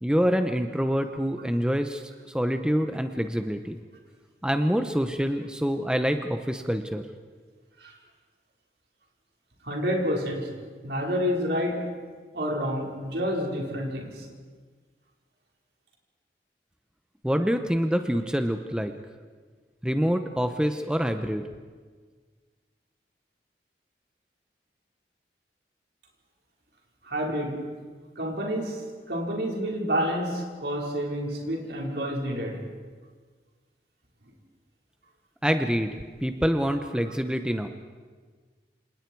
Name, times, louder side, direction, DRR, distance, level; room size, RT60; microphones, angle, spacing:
voice 1, 0.0-3.8 4.4-7.0 17.2-18.9 19.8-21.4 35.4-37.7, equal, 5° right, 7 dB, 0.8 m, -26 dB
voice 2, 9.6-10.5 10.8-11.9 12.3-14.2 27.0-27.6 28.2-28.8 29.1-32.6, equal, 75° right, -1 dB, 4.9 m, -29 dB
28.0 x 27.5 x 4.7 m, 1.5 s
head